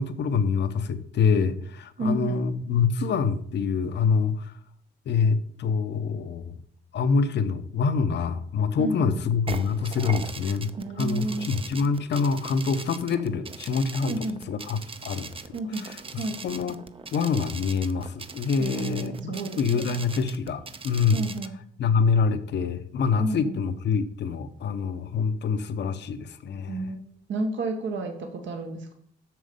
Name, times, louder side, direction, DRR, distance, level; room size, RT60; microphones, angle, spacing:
voice 1, 0.0-4.5 5.1-6.6 6.9-10.7 11.0-16.8 17.1-21.3 21.8-26.9, left 5 dB, 60° left, 11 dB, 0.9 m, -26 dB
voice 2, 2.0-2.4 8.8-9.1 10.8-11.5 14.1-14.4 15.5-15.9 16.1-16.4 18.6-19.9 21.1-21.5 23.2-23.6 26.7-27.0 27.3-28.9, right 2 dB, 70° right, 3 dB, 1.6 m, -31 dB
sound 1, 9.5-21.5, right 4 dB, 25° right, 0.7 m, -40 dB
7.7 x 6.3 x 5.3 m, 0.62 s
cardioid pair, 90°, 20 cm